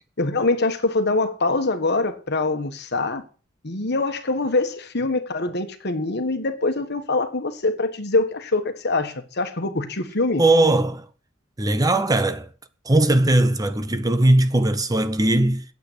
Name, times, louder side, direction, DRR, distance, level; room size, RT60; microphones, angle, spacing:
voice 1, 0.2-3.2 3.6-10.4, left 3 dB, 55° left, 1.5 m, -24 dB
voice 2, 10.4-11.1 11.6-12.5 12.8-15.6, right 1 dB, 20° right, 0.7 m, -19 dB
9.0 x 8.4 x 8.1 m
head